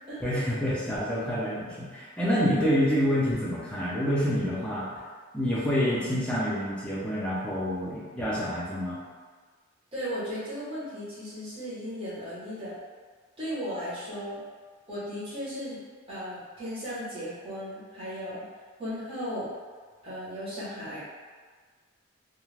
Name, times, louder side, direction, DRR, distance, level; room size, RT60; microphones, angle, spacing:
voice 1, 0.2-5.0 5.3-9.0, equal, 5° left, -8 dB, 0.5 m, -27 dB
voice 2, 9.9-12.8 13.4-14.4 14.9-15.8 16.1-18.4 18.8-19.5 20.0-21.0, equal, 25° right, -10 dB, 0.9 m, -36 dB
2.3 x 2.2 x 3.2 m, 1.5 s
head